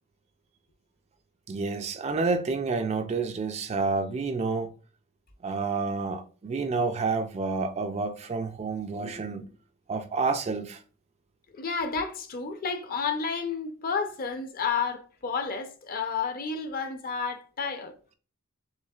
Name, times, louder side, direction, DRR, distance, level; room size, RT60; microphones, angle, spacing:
voice 1, 1.5-4.7 5.4-9.5 9.9-10.8, right 4 dB, 30° right, 0.3 m, -29 dB
voice 2, 11.5-17.9, left 5 dB, 40° left, 0.6 m, -31 dB
6.2 x 3.0 x 2.3 m
head